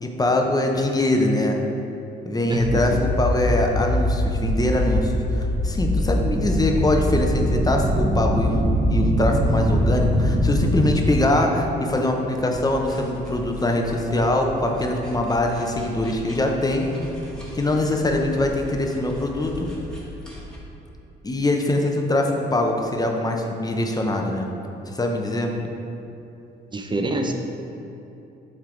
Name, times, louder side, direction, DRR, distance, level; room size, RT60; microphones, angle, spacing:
voice 1, 0.0-1.6 2.2-8.6 8.9-16.9 17.5-19.7 21.2-24.5 24.9-25.5, left 1 dB, 20° left, 2 dB, 0.7 m, -23 dB
voice 2, 2.5-3.0 26.7-27.3, right 2 dB, 25° right, 3 dB, 0.6 m, -25 dB
sound 1, 2.5-10.9, equal, 50° right, 1.4 m, -22 dB
sound 2, 12.3-20.6, left 1 dB, 5° left, 1.4 m, -38 dB
7.5 x 3.4 x 3.8 m, 2.9 s
cardioid pair, 90°, 20 cm